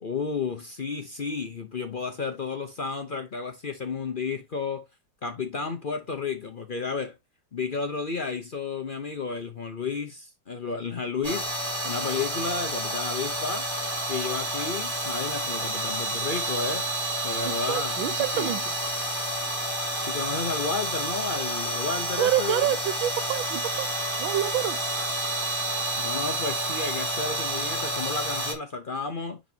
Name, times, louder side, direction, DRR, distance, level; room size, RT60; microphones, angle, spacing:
voice 1, 0.0-4.8 5.2-7.2 7.5-11.5 11.8-13.7 14.1-16.9 17.2-18.5 20.1-22.8 26.0-29.4, left 4 dB, 65° left, 0.5 m, -32 dB
sound 1, 11.2-28.5, right 1 dB, 15° right, 3.3 m, -29 dB
voice 2, 17.7-18.6 22.2-23.9 24.2-24.8, right 12 dB, 90° right, 1.5 m, -27 dB
10.5 x 4.1 x 2.7 m
omnidirectional pair, 2.1 m